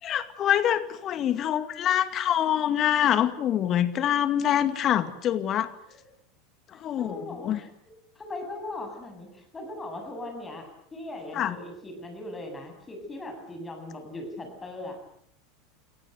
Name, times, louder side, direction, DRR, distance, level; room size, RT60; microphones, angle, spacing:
voice 1, 0.0-5.7 6.7-7.6 11.3-11.6, left 10 dB, 35° left, 12 dB, 2.2 m, -25 dB
voice 2, 7.0-7.7 8.2-15.0, left 2 dB, 15° left, 5 dB, 7.9 m, -39 dB
29.0 x 23.5 x 8.0 m, 0.70 s
figure-of-eight pair, 80°, 0 cm